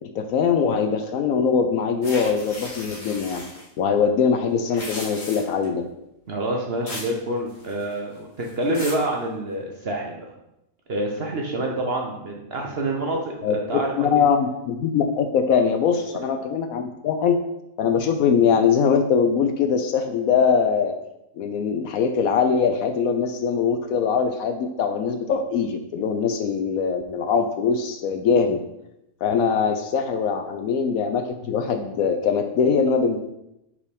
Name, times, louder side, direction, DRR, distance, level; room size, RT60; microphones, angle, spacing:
voice 1, 0.0-3.4 3.8-5.8 13.4-17.4 17.8-20.9 21.4-28.6 29.2-33.2, left 6 dB, 70° left, 6 dB, 0.9 m, -22 dB
sound 1, 2.0-3.7 4.6-5.7 6.9-7.2 7.5-8.0 8.4-9.1, left 2 dB, 85° left, 2.2 m, -36 dB
voice 2, 6.3-10.3 10.9-14.2, right 1 dB, 50° right, 0 dB, 0.9 m, -27 dB
4.8 x 4.3 x 5.1 m, 0.84 s
omnidirectional pair, 1.7 m